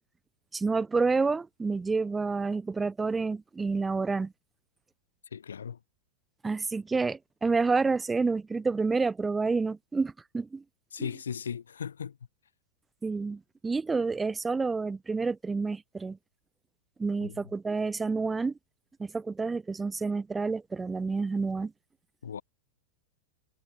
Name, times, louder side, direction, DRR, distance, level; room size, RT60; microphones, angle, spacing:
voice 1, 0.5-4.3 6.4-10.6 11.0-11.1 13.0-16.2 17.0-18.5 19.0-21.7, right 4 dB, 10° right, 0.3 m, -29 dB
voice 2, 5.3-5.8 10.9-12.2 17.2-17.4 22.2-22.4, left 7 dB, 70° left, 0.5 m, -37 dB
figure-of-eight pair, 90°, 0 cm